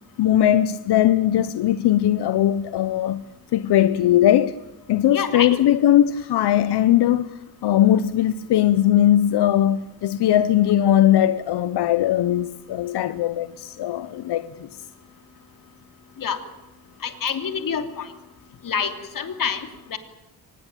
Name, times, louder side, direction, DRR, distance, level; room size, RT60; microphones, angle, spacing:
voice 1, 0.2-3.2 3.5-4.6 4.9-7.3 7.6-14.7, left 11 dB, 85° left, 0.9 m, -19 dB
voice 2, 5.1-5.6 16.2-16.4 17.0-18.1 18.6-20.0, left 7 dB, 55° left, 3.0 m, -27 dB
24.5 x 20.0 x 9.1 m
wide cardioid pair, 150°, 39 cm